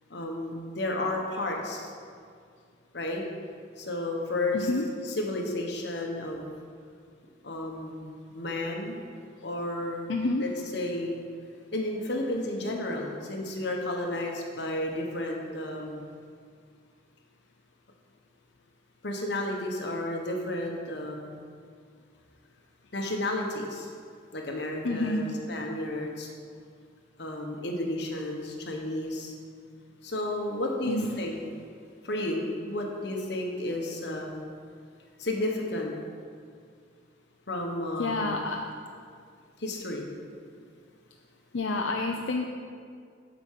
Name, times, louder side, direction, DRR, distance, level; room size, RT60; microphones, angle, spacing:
voice 1, 0.1-1.9 2.9-3.2 3.8-4.7 5.0-6.5 7.4-9.0 9.4-10.1 10.4-11.1 11.7-16.1 19.0-21.4 22.9-23.9 24.3-26.3 27.2-29.3 30.0-31.3 32.0-34.4 35.2-36.0 37.5-38.4 39.6-40.1, left 1 dB, 60° left, 0 dB, 1.3 m, -32 dB
voice 2, 4.5-4.9 10.1-10.5 24.8-25.3 30.9-31.1 38.0-38.6 41.5-42.5, left 2 dB, 80° left, 1 dB, 0.6 m, -28 dB
8.0 x 5.2 x 7.5 m, 2.2 s
head